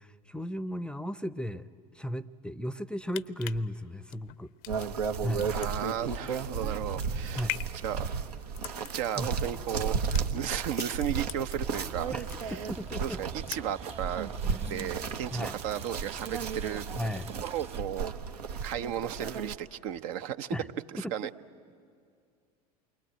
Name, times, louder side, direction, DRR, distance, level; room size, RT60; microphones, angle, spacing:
voice 1, 0.0-4.5 5.2-5.5 7.4-7.6 9.2-9.3 12.1-12.2 12.5-13.2 14.4-14.9 15.3-15.6 17.0-17.3 20.5-20.7 21.0-21.1, equal, 5° left, 16 dB, 0.6 m, -35 dB
sound 1, 2.9-11.9 12.2-12.9 13.2-13.9 14.3-14.4, left 18 dB, 60° left, 0.7 m, -42 dB
sound 2, 4.7-19.6, right 6 dB, 80° right, 1.2 m, -34 dB
voice 2, 5.5-7.5 7.8-8.1 8.9-12.1 12.4-12.5 13.0-14.3 14.6-16.8 17.4-18.1 18.6-20.5 20.9-21.3, right 10 dB, 60° right, 10 dB, 0.8 m, -35 dB
sound 3, 11.5-17.8, right 6 dB, 30° right, 1.3 m, -47 dB
28.5 x 23.0 x 8.9 m, 2.3 s
figure-of-eight pair, 75°, 20 cm